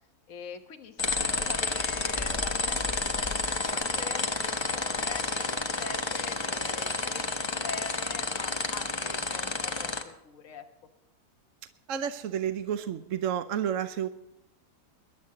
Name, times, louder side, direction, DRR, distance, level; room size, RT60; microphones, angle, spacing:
voice 1, 0.3-10.6, left 6 dB, 50° left, 4 dB, 1.6 m, -43 dB
sound 1, 1.0-10.0, left 3 dB, 20° left, 0.8 m, -30 dB
voice 2, 11.9-14.1, right 9 dB, 60° right, 10 dB, 1.0 m, -30 dB
22.5 x 11.5 x 3.8 m, 0.88 s
omnidirectional pair, 1.8 m